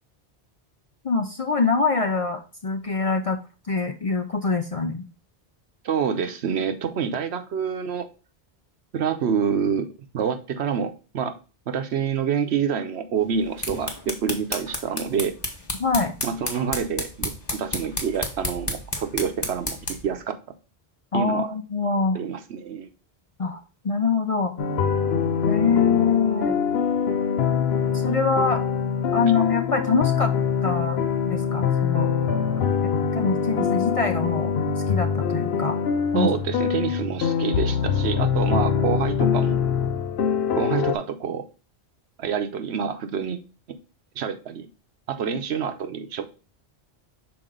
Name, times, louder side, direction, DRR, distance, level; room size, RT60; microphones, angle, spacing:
voice 1, 1.0-3.4 3.7-5.0 15.8-16.1 21.1-22.2 23.4-24.5 25.5-26.6 27.9-28.6 29.1-30.3 30.6-32.1 33.1-34.5 34.9-35.8 36.1-36.3, left 4 dB, 45° left, 7 dB, 0.5 m, -24 dB
voice 2, 5.8-8.1 8.9-9.9 10.1-11.4 11.7-15.4 16.2-19.8 20.0-20.3 21.1-21.5 22.1-22.9 36.1-39.6 40.6-41.4 42.2-43.4 43.7-43.8 44.2-44.7 45.1-46.3, right 7 dB, 80° right, 8 dB, 1.0 m, -27 dB
sound 1, 13.3-20.1, left 1 dB, 25° left, 1.1 m, -32 dB
sound 2, 24.6-40.9, left 7 dB, 75° left, 1.0 m, -24 dB
6.1 x 4.2 x 3.8 m, 0.34 s
omnidirectional pair, 1.1 m